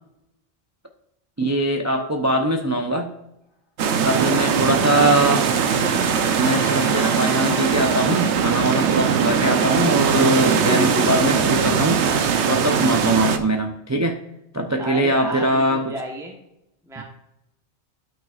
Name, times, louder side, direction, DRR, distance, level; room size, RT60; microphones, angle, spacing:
voice 1, 1.4-3.1 4.0-5.5 5.9-6.0 6.3-12.0 12.5-14.2 14.5-15.9 17.0-17.1, right 1 dB, 20° right, 3 dB, 0.5 m, -21 dB
sound 1, 3.8-13.4, right 7 dB, 90° right, 1.0 m, -20 dB
voice 2, 4.2-5.5 10.5-11.1 14.8-16.4 16.9-17.0, equal, 5° right, 0 dB, 1.0 m, -32 dB
Wind instrument woodwind instrument, 4.3-10.0, left 2 dB, 25° left, 1.2 m, -38 dB
12.0 x 6.0 x 2.4 m, 0.85 s
omnidirectional pair, 1.1 m